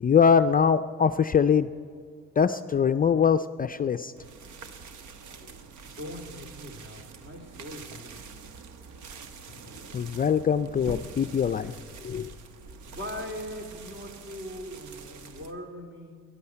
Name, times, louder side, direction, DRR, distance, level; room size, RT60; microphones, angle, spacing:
voice 1, 0.0-1.7 2.4-4.1 9.9-11.8 12.0-12.3, left 7 dB, 30° left, 10 dB, 0.4 m, -23 dB
sound 1, 4.2-15.5, right 5 dB, 85° right, 1.1 m, -45 dB
voice 2, 5.8-8.1 12.9-16.2, left 1 dB, 40° right, 3 dB, 3.0 m, -40 dB
13.0 x 11.0 x 9.6 m, 2.2 s
cardioid pair, 90°, 30 cm